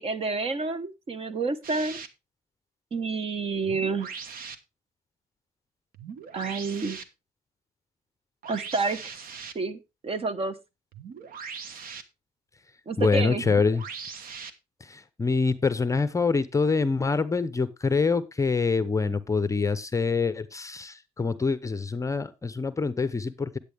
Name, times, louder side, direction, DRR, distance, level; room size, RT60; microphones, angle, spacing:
voice 1, 0.0-2.0 2.9-4.1 6.3-7.0 8.4-9.1 9.5-10.5 12.9-13.4, right 4 dB, 35° right, 13 dB, 1.1 m, -29 dB
sound 1, 1.6-2.1 3.5-4.6 5.9-7.0 8.4-9.5 10.9-12.0 13.4-14.5, right 6 dB, 60° right, 1.3 m, -40 dB
voice 2, 13.0-13.8 14.8-23.6, left 4 dB, 20° left, 13 dB, 0.7 m, -25 dB
10.5 x 8.5 x 3.5 m, 0.25 s
cardioid pair, 110°, 17 cm